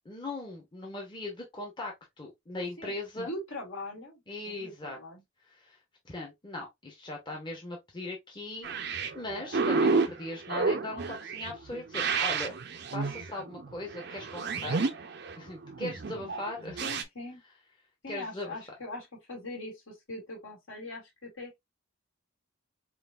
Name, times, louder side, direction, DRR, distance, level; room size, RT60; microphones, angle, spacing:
voice 1, 0.0-3.3 4.3-5.0 5.5-5.8 6.0-12.5 12.9-14.9 15.4-16.8 18.1-18.5, left 2 dB, 20° left, 0.9 m, -39 dB
voice 2, 2.8-5.2 16.8-17.4 18.0-21.6, left 2 dB, 75° left, 2.4 m, -42 dB
sound 1, 8.6-17.0, right 4 dB, 55° right, 0.6 m, -31 dB
5.6 x 2.5 x 2.4 m
head